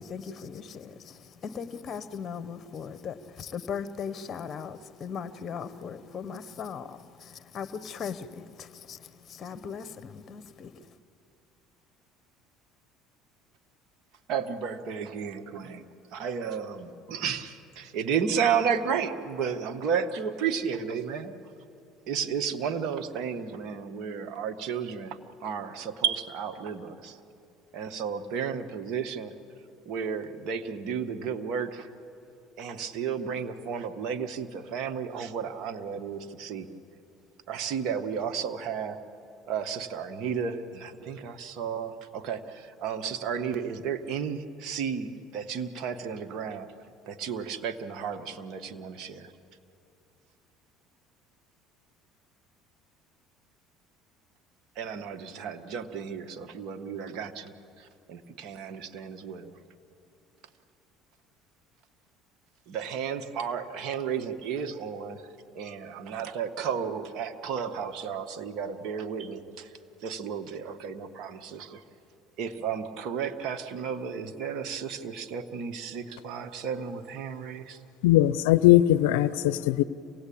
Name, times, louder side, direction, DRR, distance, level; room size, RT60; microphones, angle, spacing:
voice 1, 0.0-10.7, left 6 dB, 40° left, 1.1 m, -38 dB
voice 2, 14.3-15.8 16.1-21.3 22.1-27.2 27.7-29.3 29.8-31.9 32.6-36.7 37.5-39.0 39.5-46.7 47.1-49.3 54.8-57.5 58.1-59.5 62.7-65.2 65.6-69.7 70.0-71.8 72.4-77.8, right 7 dB, 65° right, 1.4 m, -33 dB
voice 3, 78.0-79.8, left 14 dB, 85° left, 0.5 m, -20 dB
26.5 x 18.0 x 8.6 m
supercardioid pair, 85°, 0 cm